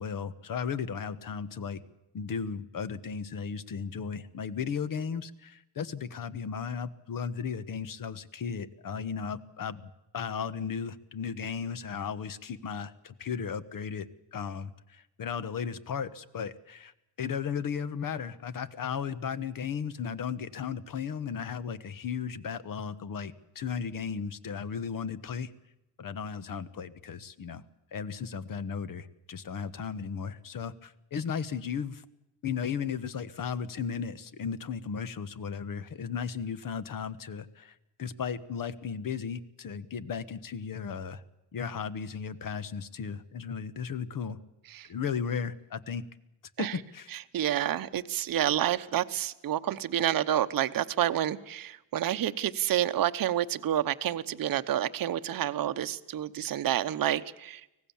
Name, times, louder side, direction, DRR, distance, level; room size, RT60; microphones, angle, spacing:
voice 1, 0.0-1.8 2.1-9.8 10.1-16.9 17.2-25.5 26.0-27.6 27.9-32.0 32.4-41.2 41.5-44.4 44.9-46.0 46.6-47.1, left 6 dB, 45° left, 14 dB, 1.3 m, -35 dB
voice 2, 47.1-57.6, right 11 dB, 45° right, 10 dB, 1.0 m, -29 dB
25.0 x 18.5 x 7.2 m, 0.89 s
cardioid pair, 150°, 47 cm